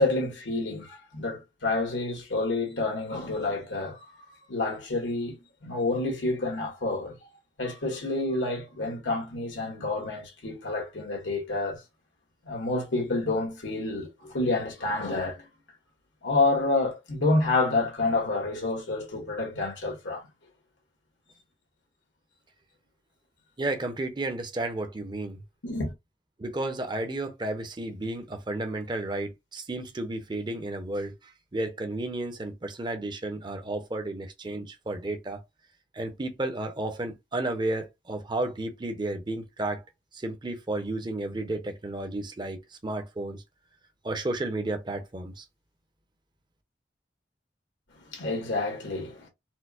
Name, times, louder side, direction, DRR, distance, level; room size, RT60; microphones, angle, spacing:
voice 1, 0.0-4.1 4.5-7.2 7.6-11.8 12.4-15.5 16.2-20.3 25.6-25.9 48.1-49.3, left 2 dB, 90° left, 1.5 m, -28 dB
voice 2, 23.6-25.4 26.4-31.1 31.5-35.4 35.9-39.8 40.1-43.4 44.0-45.4, right 2 dB, 25° right, 0.6 m, -32 dB
4.4 x 2.0 x 2.4 m
head